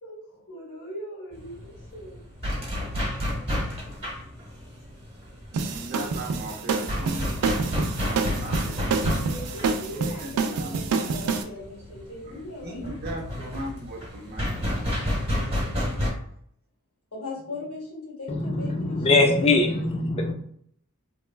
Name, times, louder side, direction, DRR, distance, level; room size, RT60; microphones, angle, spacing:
voice 1, 0.0-2.2 9.1-12.9 17.1-19.7, left 2 dB, 85° left, -5 dB, 1.4 m, -39 dB
sound 1, 1.3-16.1, left 1 dB, 25° right, 0.9 m, -31 dB
sound 2, 5.5-11.4, right 4 dB, 90° right, 0.4 m, -27 dB
voice 2, 5.7-9.0 9.6-11.6 12.2-15.1, right 1 dB, 45° right, -1 dB, 0.6 m, -38 dB
voice 3, 18.3-20.3, left 2 dB, 25° left, 3 dB, 0.3 m, -22 dB
2.9 x 2.2 x 2.2 m, 0.65 s
head